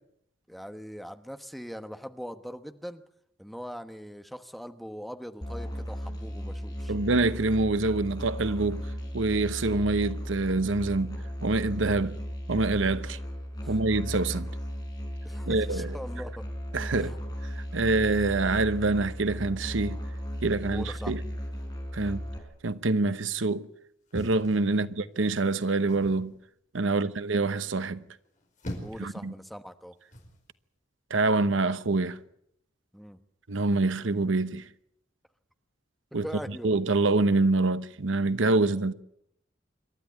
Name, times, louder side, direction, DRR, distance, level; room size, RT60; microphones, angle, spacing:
voice 1, 0.5-3.0 3.4-6.9 13.6-13.8 15.2-16.4 16.9-17.1 20.7-21.1 22.0-22.2 26.8-27.0 28.7-29.9 32.9-33.2 36.2-36.7, equal, ahead, 1.1 m, -41 dB
Musical instrument, 5.4-22.4, equal, 20° left, 4.8 m, -36 dB
voice 2, 6.9-8.9 9.1-12.2 12.5-13.2 13.7-14.5 15.5-16.0 16.7-17.1 17.5-20.0 20.4-21.2 21.9-22.2 22.6-23.7 24.1-26.3 26.7-28.0 29.0-29.3 31.1-32.2 33.5-34.6 36.1-36.3 36.6-38.9, right 3 dB, 80° right, 1.0 m, -26 dB
sound 1, 24.1-25.2 25.9-26.3 28.2-29.1 30.1-30.4, equal, 40° left, 4.9 m, -40 dB
28.0 x 13.0 x 9.4 m
head